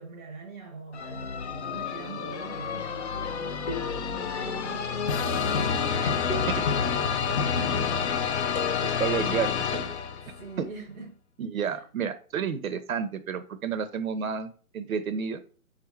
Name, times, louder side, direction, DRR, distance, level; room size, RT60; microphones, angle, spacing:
voice 1, 0.0-8.1 10.2-11.2 11.6-11.8, right 3 dB, 10° right, 0.6 m, -43 dB
sound 1, 0.9-10.4, left 6 dB, 50° left, 0.5 m, -29 dB
sound 2, 1.3-1.8 3.7-4.6 6.3-7.2 8.5-9.3, left 2 dB, 30° left, 0.9 m, -38 dB
sound 3, 1.7-9.8, left 6 dB, 85° left, 0.7 m, -41 dB
voice 2, 8.8-9.9 10.6-10.7 11.4-14.5 14.7-15.4, right 7 dB, 65° right, 0.6 m, -31 dB
3.6 x 2.5 x 4.4 m
hypercardioid pair, 145°, 44 cm